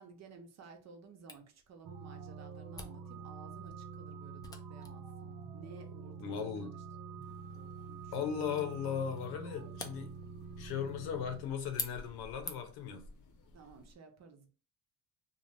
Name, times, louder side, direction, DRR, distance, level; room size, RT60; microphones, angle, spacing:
voice 1, 0.0-6.8 7.5-8.1 13.5-14.5, right 5 dB, 45° right, 0.7 m, -55 dB
Camera, 1.3-12.9, left 2 dB, 10° left, 0.3 m, -49 dB
sound 1, 1.8-11.5, right 5 dB, 85° right, 0.6 m, -47 dB
voice 2, 6.2-6.7 8.1-10.2 10.6-13.1, left 7 dB, 80° left, 0.8 m, -37 dB
sound 2, 7.2-14.0, left 1 dB, 50° left, 0.7 m, -58 dB
2.6 x 2.0 x 3.2 m
cardioid pair, 95°, 38 cm